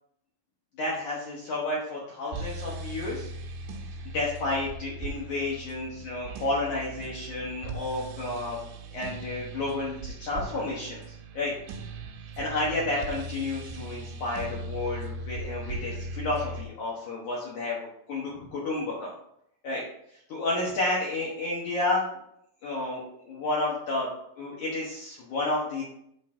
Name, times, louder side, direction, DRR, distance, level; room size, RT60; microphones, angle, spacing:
voice 1, 0.8-3.3 4.1-8.6 8.9-11.5 12.4-17.8 18.1-19.1 19.6-19.8 20.1-22.1 22.6-24.1 24.4-25.8, left 2 dB, 75° left, -5 dB, 1.7 m, -31 dB
sound 1, 2.3-16.6, right 2 dB, 80° right, 3.6 m, -39 dB
8.3 x 4.0 x 4.9 m, 0.75 s
omnidirectional pair, 5.4 m